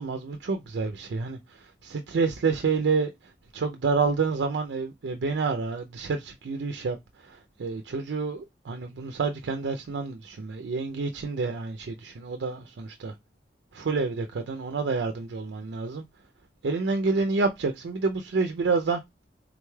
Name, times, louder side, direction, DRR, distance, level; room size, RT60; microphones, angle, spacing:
voice 1, 0.0-1.4 1.8-3.1 3.5-7.0 7.3-13.1 13.7-16.0 16.6-19.0, right 4 dB, 85° right, 0.4 m, -28 dB
3.7 x 2.2 x 3.1 m
head